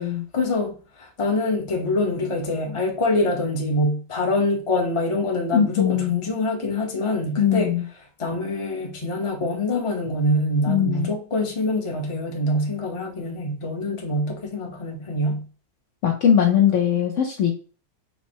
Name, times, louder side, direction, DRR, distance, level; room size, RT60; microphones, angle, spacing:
voice 1, 0.3-7.7 8.2-15.4, left 2 dB, 30° left, 0 dB, 0.6 m, -25 dB
voice 2, 5.5-6.2 7.4-7.8 10.7-11.1 16.0-17.5, left 9 dB, 80° left, 1 dB, 0.6 m, -20 dB
5.5 x 2.1 x 4.4 m, 0.38 s
omnidirectional pair, 2.0 m